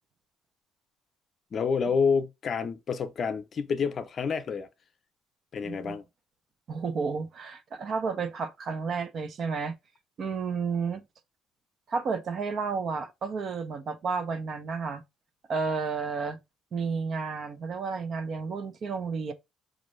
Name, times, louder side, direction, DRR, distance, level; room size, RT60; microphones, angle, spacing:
voice 1, 1.5-4.7 5.5-6.0, left 5 dB, 50° left, 0.6 m, -28 dB
voice 2, 5.6-6.0 6.7-9.7 10.2-11.0 11.9-15.0 15.5-16.4 16.7-19.3, right 5 dB, 55° right, 0.7 m, -31 dB
4.0 x 2.6 x 3.1 m
cardioid pair, 85°, 0 cm